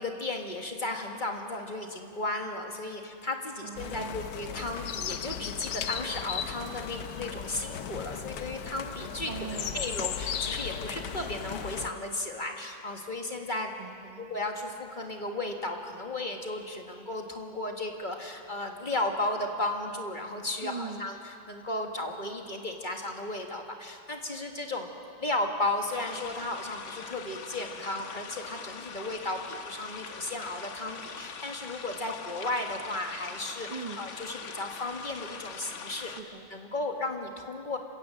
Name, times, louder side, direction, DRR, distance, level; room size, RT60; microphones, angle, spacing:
voice 1, 0.0-9.3 9.7-13.7 14.2-24.9 25.2-36.1 36.5-37.8, left 2 dB, 25° left, 3 dB, 1.6 m, -34 dB
voice 2, 3.6-4.3 9.3-10.0 13.8-14.3 20.6-21.1 33.7-34.0 35.9-36.5, right 5 dB, 35° right, 4 dB, 0.6 m, -41 dB
sound 1, 3.7-11.9, left 8 dB, 65° left, 1.4 m, -36 dB
sound 2, 25.9-36.2, left 6 dB, 50° left, 1.1 m, -42 dB
26.5 x 17.0 x 7.5 m, 2.5 s
omnidirectional pair, 2.0 m